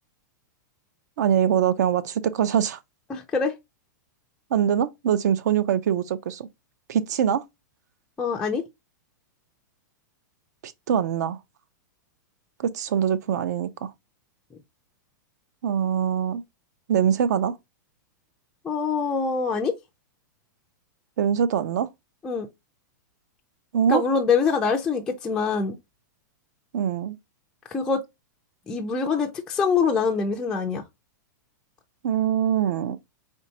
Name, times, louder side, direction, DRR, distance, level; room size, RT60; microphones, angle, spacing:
voice 1, 1.2-2.8 4.5-6.5 6.9-7.4 10.6-11.4 12.6-13.9 15.6-16.4 16.9-17.5 21.2-21.9 23.7-24.0 26.7-27.2 32.0-33.0, right 8 dB, 60° right, 0.6 m, -23 dB
voice 2, 3.1-3.5 8.2-8.6 18.6-19.7 22.2-22.5 23.9-25.7 27.7-28.0 28.7-30.8, left 5 dB, 5° left, 0.3 m, -24 dB
4.4 x 3.3 x 2.7 m
supercardioid pair, 170°, 10 cm